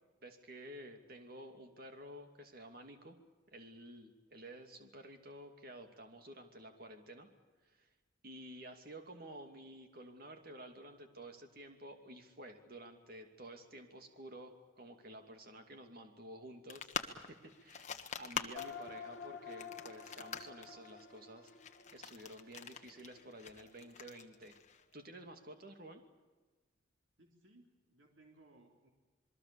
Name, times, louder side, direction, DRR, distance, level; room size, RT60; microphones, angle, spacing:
voice 1, 0.2-3.2 3.5-7.3 7.6-7.9 8.2-24.6 24.9-26.0, right 1 dB, 50° right, 5 dB, 2.6 m, -52 dB
sound 1, 16.7-24.9, left 6 dB, 35° left, 1.5 m, -45 dB
sound 2, 18.5-23.3, left 6 dB, 50° left, 1.9 m, -50 dB
voice 2, 27.2-28.9, right 2 dB, 75° right, 1 dB, 3.5 m, -64 dB
27.5 x 22.5 x 7.1 m, 1.3 s
head